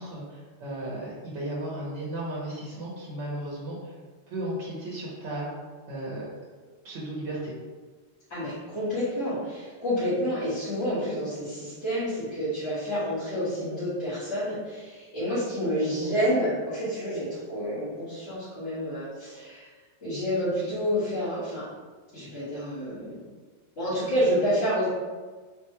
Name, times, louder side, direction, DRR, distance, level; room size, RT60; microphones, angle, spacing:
voice 1, 0.0-3.9 4.3-5.5 5.9-6.3 6.8-7.5 16.0-16.1, right 1 dB, 80° right, -5 dB, 1.1 m, -35 dB
voice 2, 8.3-19.7 20.0-21.7 22.1-23.2 23.8-24.9, equal, 70° left, -16 dB, 1.6 m, -29 dB
4.0 x 2.2 x 2.9 m, 1.4 s
omnidirectional pair, 1.2 m